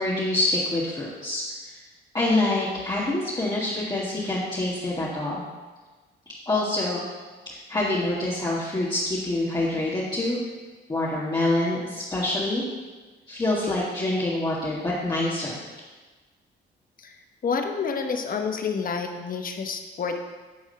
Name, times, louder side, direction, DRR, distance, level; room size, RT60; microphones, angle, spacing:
voice 1, 0.0-1.8 2.1-5.4 6.5-7.0 7.7-10.4 10.9-12.6 13.3-15.6, left 2 dB, 20° left, -7 dB, 1.7 m, -26 dB
voice 2, 17.4-20.2, left 5 dB, 45° left, 5 dB, 1.1 m, -28 dB
9.8 x 3.6 x 6.7 m, 1.3 s
cardioid pair, 90°, 20 cm